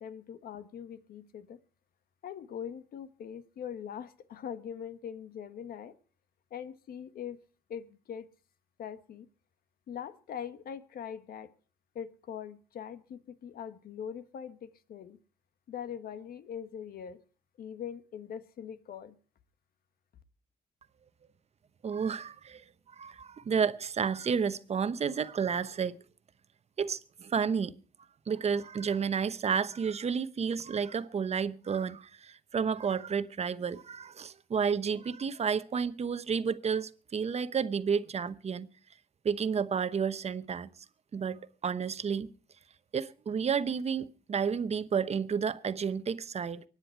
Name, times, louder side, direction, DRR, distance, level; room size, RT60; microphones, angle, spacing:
voice 1, 0.0-1.6 2.2-5.9 6.5-7.4 7.7-8.3 8.8-9.3 9.9-11.5 11.9-15.2 15.7-17.2 17.6-19.2, left 8 dB, 75° left, 1.4 m, -42 dB
voice 2, 21.8-26.0 26.8-27.7 28.3-38.7 39.2-40.7 41.1-42.3 42.9-46.6, right 6 dB, 45° right, 0.9 m, -31 dB
23.5 x 9.8 x 4.6 m
cardioid pair, 100°, 16 cm